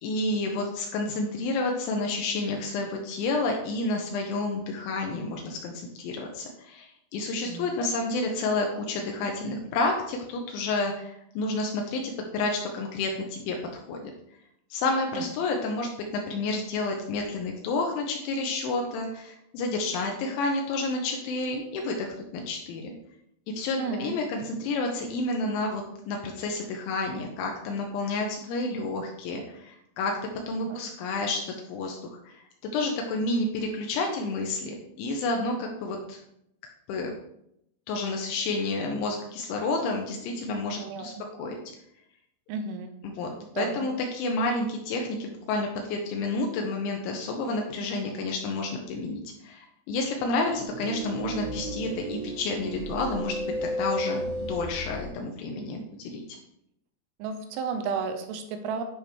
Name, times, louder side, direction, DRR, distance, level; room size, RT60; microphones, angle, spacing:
voice 1, 0.0-14.1 14.7-22.1 22.3-22.9 23.6-30.2 30.5-36.2 36.9-37.1 37.9-41.1 41.4-41.6 43.0-53.4 53.6-56.2, left 2 dB, 85° left, 1 dB, 2.9 m, -30 dB
voice 2, 7.5-7.9 15.1-15.2 23.8-24.2 30.7-30.8 40.8-41.2 42.5-42.9 43.5-43.9 57.2-58.8, right 5 dB, 85° right, 6 dB, 3.0 m, -33 dB
sound 1, 50.4-55.1, equal, 65° right, 3.2 m, -33 dB
11.0 x 5.1 x 3.0 m, 0.78 s
omnidirectional pair, 5.8 m